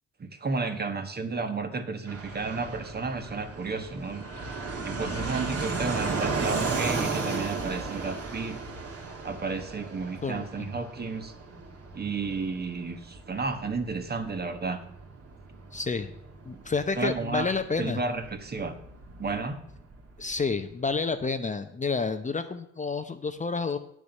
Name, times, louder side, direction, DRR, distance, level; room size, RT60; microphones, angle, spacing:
voice 1, 0.2-4.3 4.8-8.6 9.2-11.3 11.9-14.8 16.5-16.6 16.9-17.5 17.8-18.8 19.2-19.6, right 4 dB, 30° right, 8 dB, 1.4 m, -32 dB
Fixed-wing aircraft airplane, 2.1-20.4, right 4 dB, 50° right, 2.4 m, -35 dB
voice 2, 15.7-16.1 16.5-18.0 20.2-23.8, left 4 dB, 25° left, 9 dB, 0.7 m, -29 dB
8.8 x 6.8 x 6.5 m, 0.74 s
cardioid pair, 90°, 30 cm